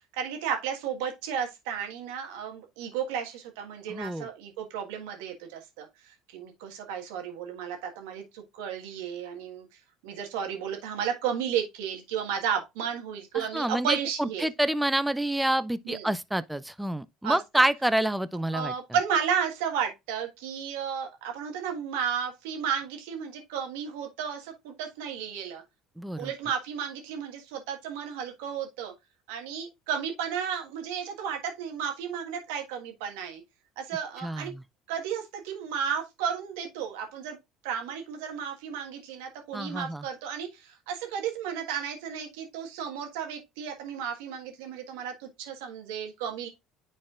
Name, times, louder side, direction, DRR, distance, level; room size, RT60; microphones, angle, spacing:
voice 1, 0.1-9.7 10.0-14.5 15.8-16.1 17.2-17.6 18.5-25.6 26.2-28.9 29.3-33.4 33.8-34.5 34.9-37.4 37.6-46.5, right 8 dB, 80° right, 1.5 m, -33 dB
voice 2, 3.9-4.3 13.3-18.7 26.0-26.3 34.2-34.6 39.5-40.0, right 1 dB, 5° right, 0.5 m, -28 dB
10.0 x 4.2 x 2.4 m
hypercardioid pair, 75°, 0 cm